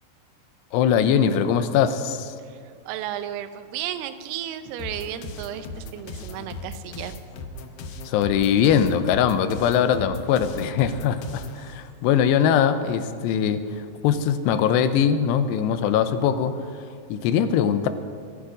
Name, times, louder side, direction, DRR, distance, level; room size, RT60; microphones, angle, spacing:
voice 1, 0.7-2.4 8.1-17.9, left 8 dB, 85° left, 11 dB, 2.8 m, -22 dB
voice 2, 2.9-7.1, right 11 dB, 80° right, 10 dB, 2.7 m, -33 dB
sound 1, 4.8-11.6, left 3 dB, 70° left, 2.5 m, -38 dB
24.0 x 8.7 x 5.0 m, 2.2 s
omnidirectional pair, 4.8 m